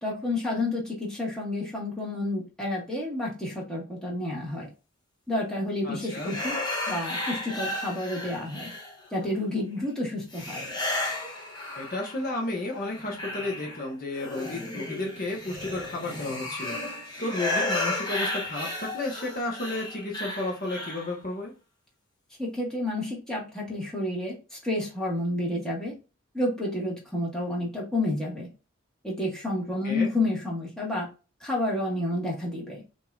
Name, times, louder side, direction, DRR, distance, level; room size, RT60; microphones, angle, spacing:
voice 1, 0.0-4.7 5.3-6.6 6.9-8.7 9.1-10.6 22.4-25.9 26.3-28.5 29.0-31.1 31.4-32.8, left 1 dB, 5° left, -4 dB, 1.6 m, -30 dB
voice 2, 5.8-6.3 11.8-21.5 29.8-30.1, left 2 dB, 45° left, -1 dB, 1.2 m, -32 dB
sound 1, 6.0-9.2 10.3-12.3 12.7-21.1, left 1 dB, 20° left, 1.2 m, -33 dB
6.0 x 2.9 x 2.4 m, 0.31 s
head